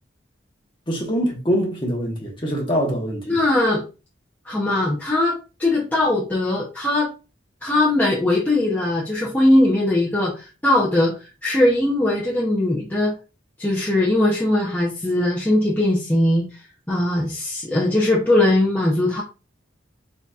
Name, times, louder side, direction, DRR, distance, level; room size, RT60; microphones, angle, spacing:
voice 1, 0.9-3.4, equal, 25° left, 1.1 m, -24 dB
voice 2, 3.3-3.8 4.4-7.1 7.6-11.2 11.4-13.2 13.6-16.5 16.9-19.2, left 1 dB, 10° left, 0.7 m, -20 dB
4.1 x 3.9 x 2.3 m
head